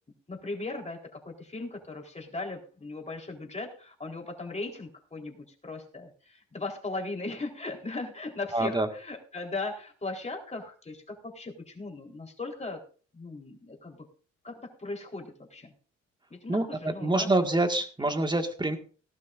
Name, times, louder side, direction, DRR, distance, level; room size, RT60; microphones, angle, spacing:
voice 1, 0.3-12.8 13.1-14.1 14.4-15.7 16.3-17.3 18.0-18.2, left 3 dB, 20° left, 1 dB, 4.0 m, -38 dB
voice 2, 8.5-8.9 16.5-18.8, right 2 dB, 15° right, 6 dB, 1.9 m, -26 dB
18.5 x 12.0 x 2.6 m, 0.39 s
cardioid pair, 90°, 30 cm